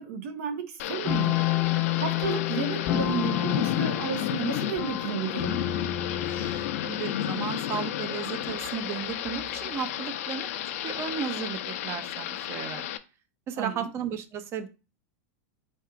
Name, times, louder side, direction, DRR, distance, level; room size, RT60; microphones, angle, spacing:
voice 1, 0.0-1.4 1.9-5.6 13.6-13.9, right 7 dB, 65° right, 0.8 m, -32 dB
Thunder / Rain, 0.8-13.0, left 12 dB, 65° left, 0.5 m, -32 dB
sound 1, 1.0-7.0, left 13 dB, 25° left, 0.7 m, -30 dB
voice 2, 6.8-10.5 10.8-12.9 13.5-14.7, right 7 dB, 35° right, 0.6 m, -34 dB
4.3 x 2.4 x 4.7 m
supercardioid pair, 135°, 8 cm